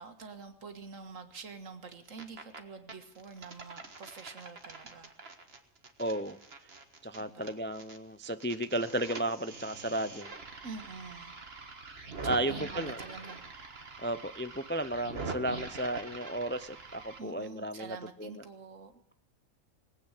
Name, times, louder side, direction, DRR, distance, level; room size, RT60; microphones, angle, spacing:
voice 1, 0.0-5.2 7.2-7.6 10.6-11.4 12.2-13.5 17.2-18.9, right 4 dB, 80° right, 2.0 m, -46 dB
sound 1, 1.9-2.6 2.9-8.0 8.2-17.2, right 4 dB, 50° right, 1.8 m, -44 dB
voice 2, 6.0-6.7 7.0-10.3 12.2-13.0 14.0-18.3, right 1 dB, 20° left, 0.3 m, -34 dB
20.0 x 8.8 x 8.2 m
omnidirectional pair, 1.3 m